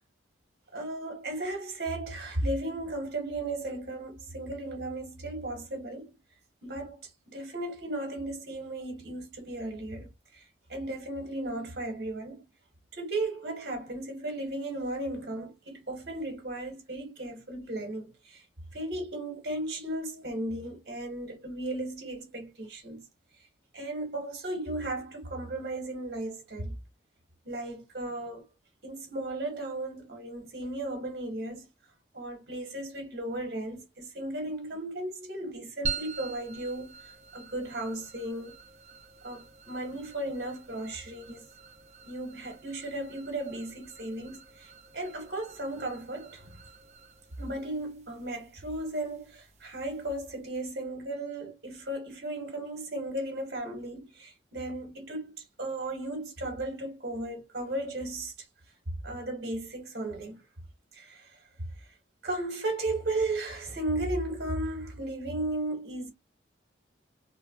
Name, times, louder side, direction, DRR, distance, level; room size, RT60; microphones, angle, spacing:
voice 1, 0.7-6.1 6.6-7.0 7.3-10.4 10.7-12.5 13.0-18.4 18.7-23.1 23.7-26.8 27.4-28.4 28.8-31.7 32.1-37.0 37.3-38.6 39.2-41.5 42.1-46.5 47.4-58.3 59.0-60.4 60.9-61.3 62.2-66.1, right 1 dB, 55° right, 1.3 m, -35 dB
sound 1, 35.8-50.5, right 5 dB, 35° right, 0.5 m, -45 dB
3.5 x 2.2 x 2.3 m
head